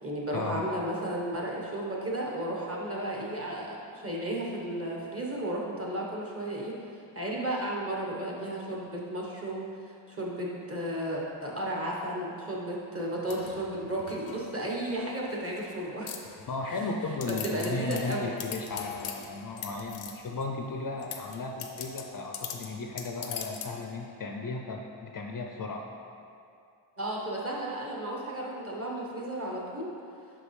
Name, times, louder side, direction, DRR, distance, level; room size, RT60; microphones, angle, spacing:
voice 1, 0.0-6.8 7.1-16.1 16.7-16.9 17.3-18.3 27.0-29.9, right 1 dB, 30° right, -3 dB, 1.1 m, -33 dB
sound 1, 13.3-14.8 15.3-15.7 16.1-16.8 17.2-20.4 21.0-23.8, left 7 dB, 90° left, 0.6 m, -42 dB
voice 2, 16.5-25.8, left 3 dB, 45° left, 1 dB, 0.5 m, -35 dB
5.7 x 5.1 x 3.2 m, 2.5 s
cardioid pair, 85°, 49 cm